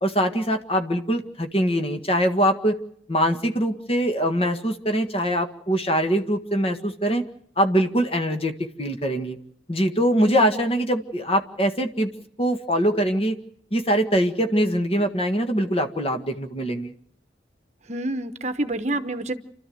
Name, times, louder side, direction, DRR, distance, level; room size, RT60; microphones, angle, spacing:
voice 1, 0.0-2.8 3.1-7.2 7.6-9.4 9.7-12.1 12.4-13.4 13.7-16.9, equal, 30° left, 6 dB, 1.7 m, -23 dB
voice 2, 10.2-10.6 17.9-19.3, right 1 dB, 35° right, 10 dB, 1.1 m, -28 dB
29.0 x 13.0 x 7.8 m, 0.69 s
head